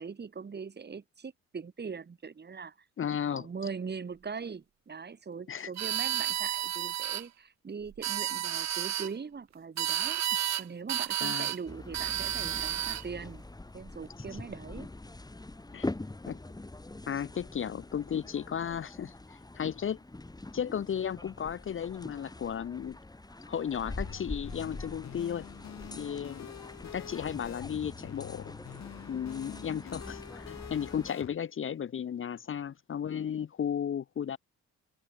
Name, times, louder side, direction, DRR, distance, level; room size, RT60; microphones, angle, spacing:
voice 1, 0.0-2.8 3.3-10.2 10.6-13.4 13.7-14.9, right 5 dB, 35° right, 2.6 m, -41 dB
voice 2, 3.0-3.5 5.5-5.7 11.2-11.5 15.7-15.9 16.3-16.4 17.1-20.0 20.5-23.0 23.5-25.5 26.0-26.5 26.9-28.5 29.1-34.4, left 8 dB, 45° left, 0.9 m, -34 dB
sound 1, 5.8-7.2 7.9-9.1 9.8-10.6 10.9-11.6 11.9-13.0, right 11 dB, 65° right, 1.3 m, -31 dB
sound 2, 11.7-31.1, left 2 dB, 15° left, 3.0 m, -44 dB
sound 3, 23.9-31.3, left 10 dB, 60° left, 2.0 m, -47 dB
cardioid pair, 90°, 30 cm